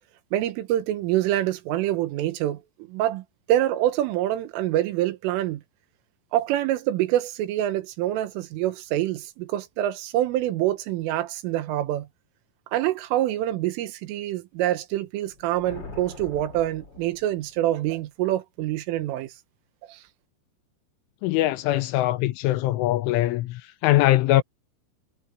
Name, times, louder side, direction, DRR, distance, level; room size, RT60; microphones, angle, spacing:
voice 1, 0.3-2.6 2.9-5.6 6.3-12.1 12.7-19.3 19.9-20.0, right 13 dB, 80° right, 3.9 m, -26 dB
sound 1, 15.2-17.7, left 3 dB, 30° left, 2.6 m, -43 dB
voice 2, 21.2-24.4, left 16 dB, 80° left, 3.1 m, -22 dB
omnidirectional pair, 5.8 m